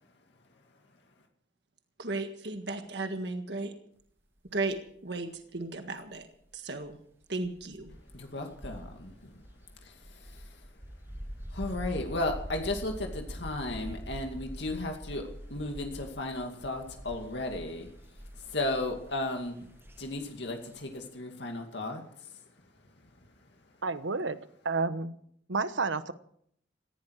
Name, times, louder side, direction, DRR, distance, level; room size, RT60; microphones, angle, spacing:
voice 1, 2.0-3.7 4.5-4.8 5.0-6.3 6.5-7.0 7.3-7.9, right 2 dB, 65° right, 6 dB, 1.7 m, -35 dB
sound 1, 4.5-4.8 6.3-6.4 6.8-6.9 7.4-21.0, equal, 10° right, 1.2 m, -44 dB
voice 2, 8.1-9.5 9.8-10.7 11.5-19.7 20.0-22.4 22.9-23.0, left 2 dB, 65° left, 3 dB, 2.4 m, -35 dB
voice 3, 23.8-24.4 24.6-25.1 25.5-26.1, right 4 dB, 85° right, 13 dB, 1.1 m, -30 dB
19.0 x 15.5 x 4.8 m, 0.66 s
head